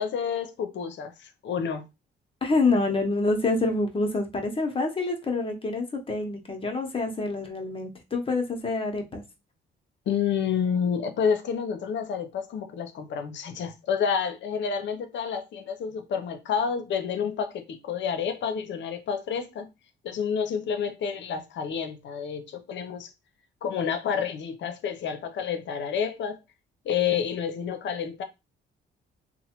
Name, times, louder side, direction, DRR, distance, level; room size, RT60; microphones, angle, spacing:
voice 1, 0.0-1.8 10.1-19.7 20.0-23.1 23.6-26.4 26.8-28.2, left 7 dB, 65° left, 0.7 m, -29 dB
voice 2, 2.4-9.2, left 3 dB, 25° left, 0.8 m, -27 dB
3.0 x 2.1 x 2.9 m
cardioid pair, 90°, 20 cm